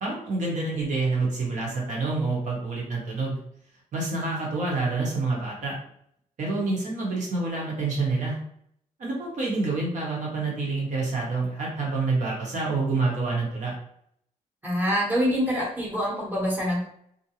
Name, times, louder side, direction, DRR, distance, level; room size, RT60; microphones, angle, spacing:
voice 1, 0.0-3.4 3.9-5.7 6.4-8.4 9.0-13.7, right 3 dB, 60° right, -3 dB, 1.1 m, -27 dB
voice 2, 14.6-16.9, equal, 15° right, -4 dB, 1.0 m, -25 dB
2.5 x 2.1 x 2.9 m, 0.69 s
cardioid pair, 120°, 14 cm